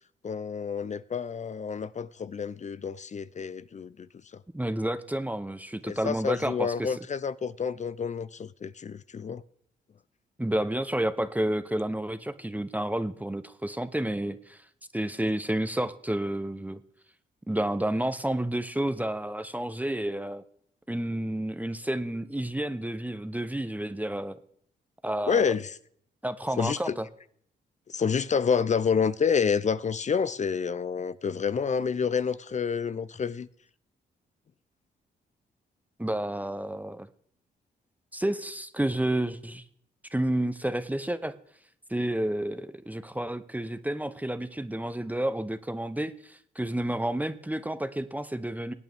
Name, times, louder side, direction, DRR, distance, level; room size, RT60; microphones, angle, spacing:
voice 1, 0.2-4.1 5.8-9.4 25.3-25.8 26.6-27.0 27.9-33.5, left 6 dB, 40° left, 0.5 m, -28 dB
voice 2, 4.5-6.9 10.4-14.6 14.9-16.8 17.5-20.4 20.9-24.4 25.0-25.5 26.2-27.0 36.0-37.1 38.1-39.6 40.1-41.4 41.9-48.7, right 1 dB, 10° right, 0.8 m, -30 dB
21.5 x 9.0 x 3.5 m
cardioid pair, 65°, 19 cm